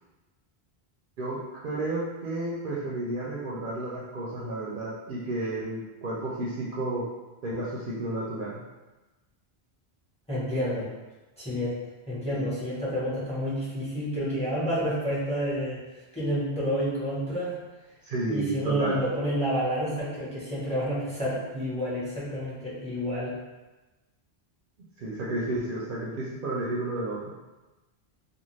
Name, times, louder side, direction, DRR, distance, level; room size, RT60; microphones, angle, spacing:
voice 1, 1.2-7.0 7.4-8.6 12.3-12.4 18.0-19.0 25.0-27.3, right 2 dB, 65° right, -5 dB, 0.7 m, -32 dB
voice 2, 10.3-10.9 11.4-11.8 12.1-15.8 16.1-17.6 18.3-23.4, equal, 5° left, -9 dB, 0.9 m, -29 dB
2.5 x 2.3 x 3.1 m, 1.1 s
omnidirectional pair, 1.0 m